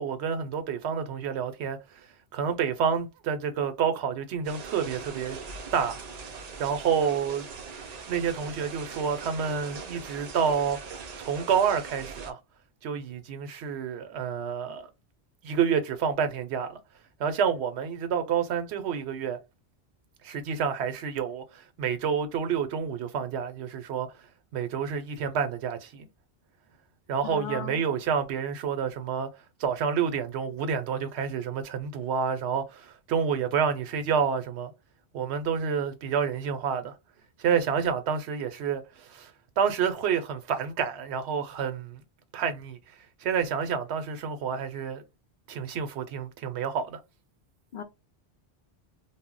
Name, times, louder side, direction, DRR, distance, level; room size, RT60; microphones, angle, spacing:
voice 1, 0.0-2.0 2.3-5.4 5.7-6.0 6.6-7.5 8.1-12.4 12.8-14.9 15.4-16.8 17.2-19.4 20.2-24.1 24.5-26.0 27.1-29.3 29.6-34.7 35.1-37.0 37.4-42.0 42.3-42.8 43.2-45.0 45.5-47.0, right 7 dB, 75° right, 0.8 m, -29 dB
sound 1, 4.4-12.3, right 5 dB, 55° right, 0.5 m, -41 dB
voice 2, 27.2-27.8 47.7-47.8, left 7 dB, 55° left, 0.7 m, -36 dB
2.1 x 2.0 x 3.7 m
omnidirectional pair, 1.1 m